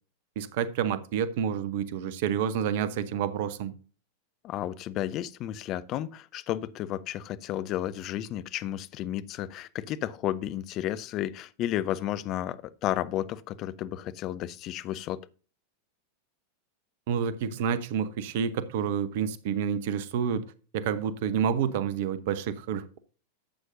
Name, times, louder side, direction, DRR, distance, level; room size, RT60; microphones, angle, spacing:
voice 1, 0.4-3.7 17.1-20.4 20.7-23.0, right 8 dB, 50° right, 1.0 m, -29 dB
voice 2, 4.4-15.3, left 12 dB, 35° left, 0.7 m, -32 dB
12.0 x 8.2 x 2.6 m
figure-of-eight pair, 90°, 0 cm